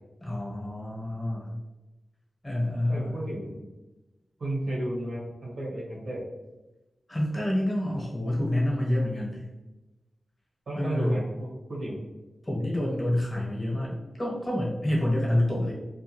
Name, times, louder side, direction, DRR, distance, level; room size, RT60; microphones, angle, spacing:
voice 1, 0.2-1.5 2.4-3.1 7.1-9.5 10.7-11.2 12.4-15.7, left 1 dB, 25° left, -4 dB, 1.0 m, -28 dB
voice 2, 2.9-3.6 4.4-6.2 10.7-12.0, right 1 dB, 80° right, -6 dB, 1.1 m, -33 dB
2.4 x 2.2 x 2.9 m, 1.1 s
cardioid pair, 60°, 0 cm